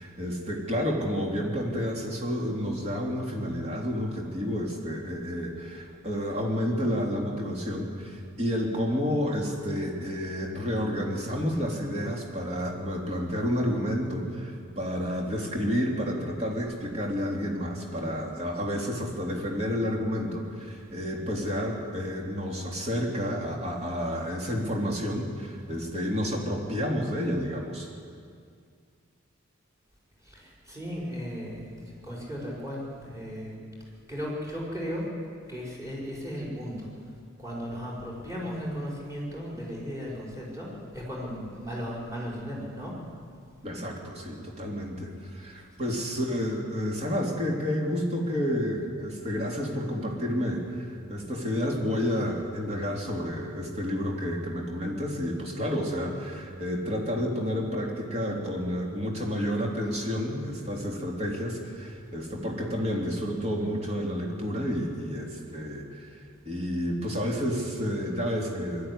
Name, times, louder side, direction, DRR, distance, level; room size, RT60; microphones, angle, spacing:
voice 1, 0.0-27.9 43.6-66.1 66.4-68.9, equal, 30° right, -1 dB, 3.1 m, -30 dB
voice 2, 30.2-33.6 34.1-35.0 35.5-36.9 37.4-42.9 45.8-46.1, equal, 15° right, -5 dB, 5.8 m, -36 dB
21.0 x 12.5 x 10.0 m, 2.2 s
head